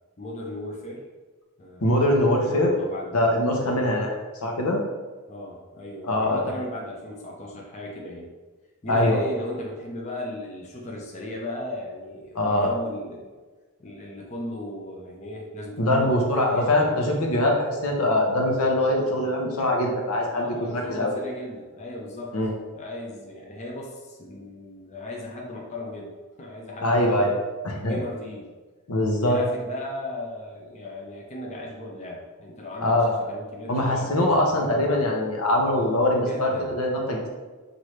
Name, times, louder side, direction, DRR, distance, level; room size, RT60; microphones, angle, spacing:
voice 1, 0.2-1.0 1.6-3.2 3.6-3.8 5.3-8.3 8.8-13.3 13.8-17.2 20.3-22.4 22.8-27.4 27.7-28.5 29.1-34.9 36.3-36.7, left 1 dB, 30° left, -2 dB, 0.6 m, -37 dB
voice 2, 1.8-2.8 3.1-4.2 4.4-4.8 6.0-6.4 8.9-9.2 12.3-12.7 15.8-21.1 22.3-22.5 26.8-27.3 27.6-28.0 28.9-29.4 32.8-33.2 33.7-37.3, left 1 dB, 80° left, 1 dB, 0.8 m, -22 dB
5.9 x 2.6 x 3.1 m, 1.3 s
head